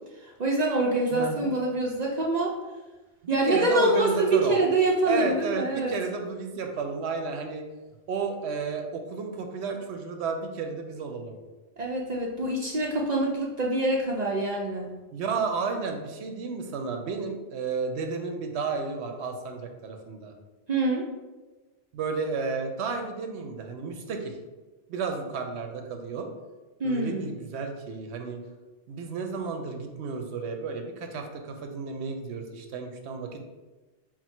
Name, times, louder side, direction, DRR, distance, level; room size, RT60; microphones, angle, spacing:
voice 1, 0.2-2.5 3.3-5.9 11.8-14.9 20.7-21.0 26.8-27.3, right 2 dB, 55° right, -1 dB, 0.5 m, -25 dB
voice 2, 1.1-1.5 3.2-4.6 5.0-7.6 8.1-11.3 15.1-20.3 21.9-24.4 24.9-26.3 26.8-28.4 28.9-33.5, right 4 dB, 75° right, 4 dB, 0.8 m, -32 dB
4.4 x 2.1 x 4.3 m, 1.2 s
omnidirectional pair, 1.1 m